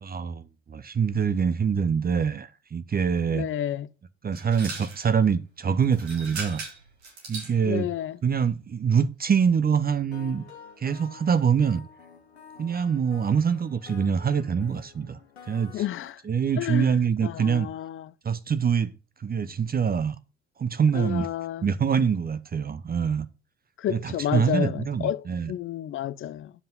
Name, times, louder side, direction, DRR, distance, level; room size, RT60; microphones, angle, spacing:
voice 1, 0.0-3.5 4.2-6.6 7.3-7.9 8.2-10.5 10.8-11.8 12.6-15.2 15.5-15.8 16.2-17.7 18.2-18.9 19.2-20.2 20.6-21.3 21.6-23.3 23.9-25.5, right 6 dB, 30° right, 0.8 m, -25 dB
voice 2, 3.3-3.9 7.6-8.2 15.7-16.2 16.6-18.1 20.9-21.7 23.8-26.5, left 11 dB, 40° left, 0.6 m, -31 dB
sound 1, 4.3-5.1 5.8-7.5, right 3 dB, 85° right, 3.3 m, -38 dB
sound 2, 10.1-16.1, left 6 dB, 90° left, 1.3 m, -49 dB
9.7 x 5.5 x 5.4 m
hypercardioid pair, 55°, 32 cm